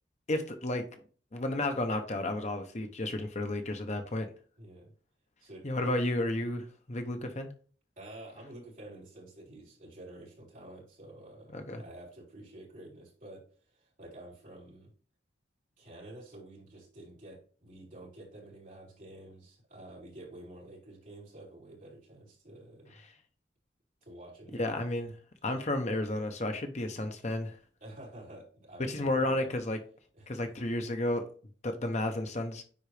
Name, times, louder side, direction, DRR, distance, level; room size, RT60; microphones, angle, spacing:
voice 1, 0.3-0.8 1.3-4.3 5.6-7.5 11.5-11.8 24.6-25.1 25.4-27.6 28.9-29.8 30.3-31.2 31.6-32.6, left 1 dB, 35° left, 0.8 m, -32 dB
voice 2, 4.6-4.9 5.4-5.8 8.0-13.4 13.7-14.9 15.8-23.0 24.0-24.8 27.8-29.5 30.2-30.3, right 1 dB, 45° right, 3.9 m, -49 dB
9.7 x 4.0 x 3.3 m
head